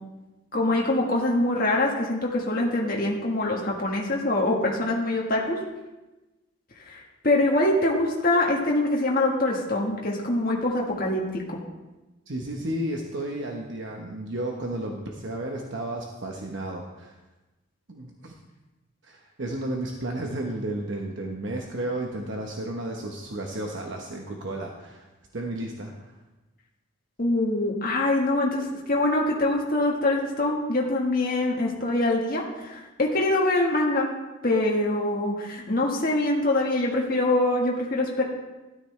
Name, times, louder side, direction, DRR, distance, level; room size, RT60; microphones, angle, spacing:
voice 1, 0.5-5.6 6.8-11.6 27.2-34.1 34.4-38.2, left 2 dB, 45° left, -2 dB, 1.5 m, -24 dB
voice 2, 12.3-17.2 17.9-18.3 19.0-25.1 25.3-26.1, right 1 dB, 65° right, 1 dB, 1.0 m, -33 dB
13.0 x 10.0 x 3.3 m, 1.1 s
head